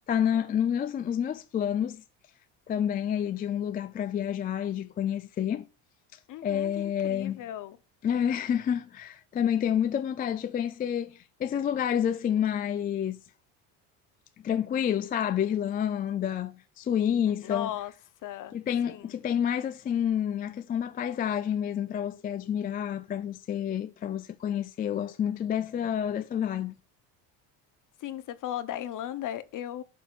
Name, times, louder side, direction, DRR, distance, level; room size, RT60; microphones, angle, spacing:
voice 1, 0.1-2.0 2.7-5.7 6.4-7.4 8.0-13.2 14.4-17.7 18.5-26.7, left 9 dB, 25° left, 0.3 m, -29 dB
voice 2, 6.3-7.8 17.3-17.9 18.2-18.6 18.8-19.1 28.0-29.8, left 11 dB, 45° left, 0.8 m, -36 dB
11.5 x 5.5 x 2.4 m
cardioid pair, 110°, 42 cm